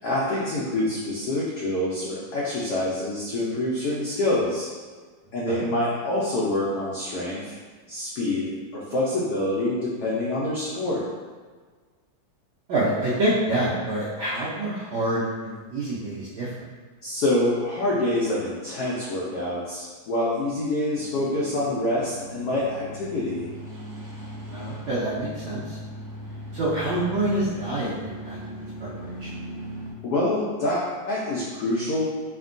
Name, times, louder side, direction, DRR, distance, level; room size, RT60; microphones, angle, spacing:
voice 1, 0.0-4.7 5.3-7.6 7.9-11.0 17.0-23.5 30.0-32.1, left 1 dB, 75° left, -6 dB, 0.9 m, -26 dB
voice 2, 12.7-16.5 24.5-25.8 26.5-29.3, right 1 dB, 80° right, -9 dB, 1.4 m, -27 dB
sound 1, 21.0-29.9, equal, 60° right, 1.0 m, -39 dB
3.5 x 2.2 x 2.4 m, 1.5 s
omnidirectional pair, 2.2 m